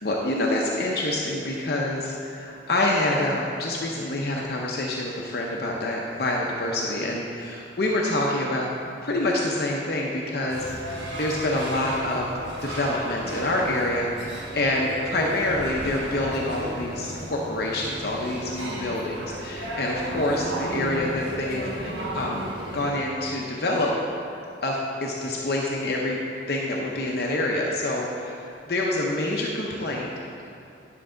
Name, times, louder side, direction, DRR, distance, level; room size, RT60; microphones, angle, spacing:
voice 1, 0.0-8.7 9.0-22.4 22.7-23.9 24.6-26.2 26.5-28.3 28.7-30.1, left 1 dB, 60° left, -2 dB, 0.7 m, -27 dB
sound 1, 10.5-22.9, right 1 dB, 85° right, 1.2 m, -34 dB
10.0 x 6.0 x 3.8 m, 2.7 s
head